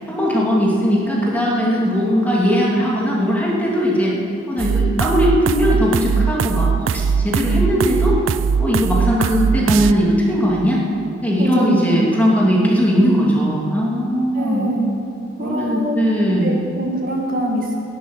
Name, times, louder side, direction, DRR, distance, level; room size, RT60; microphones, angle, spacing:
voice 1, 0.1-4.2 4.5-8.2 8.6-10.8 11.2-14.7 15.4-16.7, equal, 10° left, -4 dB, 2.7 m, -18 dB
sound 1, 4.6-9.9, right 6 dB, 70° right, 0.4 m, -20 dB
voice 2, 11.4-11.7 14.3-14.9 15.4-16.0 16.4-17.8, right 1 dB, 45° right, 0 dB, 1.9 m, -24 dB
16.0 x 11.5 x 7.4 m, 3.0 s
head